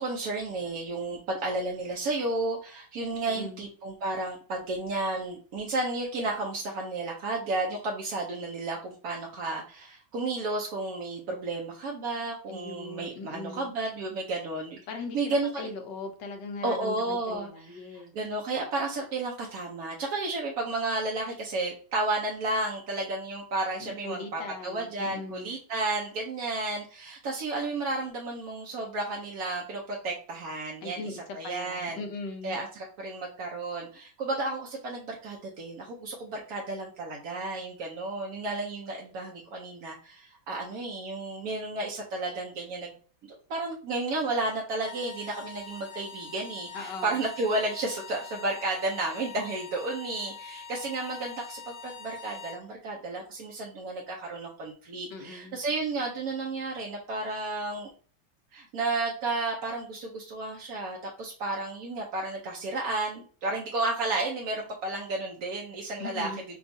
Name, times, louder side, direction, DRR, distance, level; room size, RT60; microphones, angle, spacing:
voice 1, 0.0-14.8 15.1-15.7 16.6-31.0 31.3-32.0 32.4-42.9 43.2-57.9 58.5-66.3, right 2 dB, 65° right, -1 dB, 1.0 m, -32 dB
voice 2, 3.3-3.6 12.5-13.7 14.9-18.1 23.8-25.5 30.8-32.6 46.7-47.2 55.1-55.6 66.0-66.4, left 3 dB, 70° left, 4 dB, 1.3 m, -40 dB
sound 1, 44.7-52.6, left 6 dB, 90° left, 0.5 m, -44 dB
6.0 x 2.4 x 2.6 m, 0.41 s
omnidirectional pair, 2.1 m